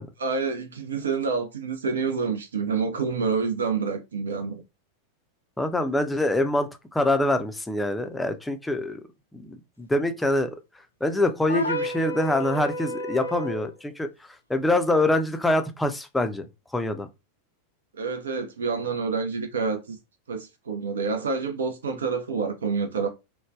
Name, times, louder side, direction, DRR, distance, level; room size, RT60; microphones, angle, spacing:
voice 1, 0.2-4.6 17.9-20.0 20.3-23.1, right 5 dB, 65° right, 0.4 m, -28 dB
voice 2, 5.6-9.0 9.3-10.5 11.0-14.1 14.5-16.5 16.7-17.1, left 1 dB, 5° left, 0.4 m, -25 dB
sound 1, 11.5-13.7, equal, 80° left, 0.4 m, -30 dB
3.1 x 2.0 x 2.3 m
figure-of-eight pair, 90°, 0 cm